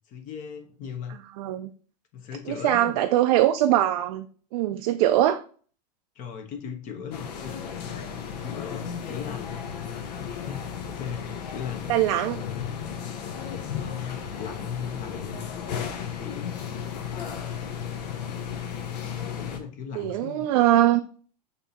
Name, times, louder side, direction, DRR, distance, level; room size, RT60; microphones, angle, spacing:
voice 1, 0.1-1.2 2.1-3.0 6.1-7.5 8.4-9.5 9.8-11.9 13.7-15.5 16.0-16.6 19.2-20.5, left 7 dB, 40° left, 5 dB, 1.0 m, -37 dB
voice 2, 1.4-1.7 2.5-4.3 4.5-5.4 11.9-12.4 19.9-21.0, right 13 dB, 60° right, 7 dB, 0.4 m, -22 dB
sound 1, 7.1-19.6, left 7 dB, 75° left, 0.8 m, -34 dB
6.4 x 2.8 x 2.8 m, 0.43 s
hypercardioid pair, 115°, 21 cm